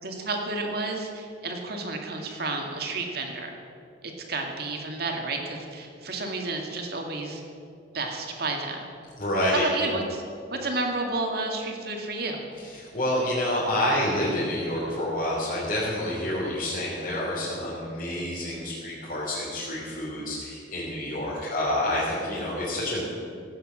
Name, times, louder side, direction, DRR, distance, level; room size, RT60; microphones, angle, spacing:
voice 1, 0.0-3.5 4.0-7.4 7.9-8.9 9.6-10.2 10.5-12.4, right 2 dB, 55° right, 2 dB, 2.1 m, -31 dB
voice 2, 9.2-9.6 12.6-23.0, left 1 dB, 45° left, -8 dB, 3.3 m, -28 dB
16.5 x 8.9 x 7.5 m, 2.5 s
head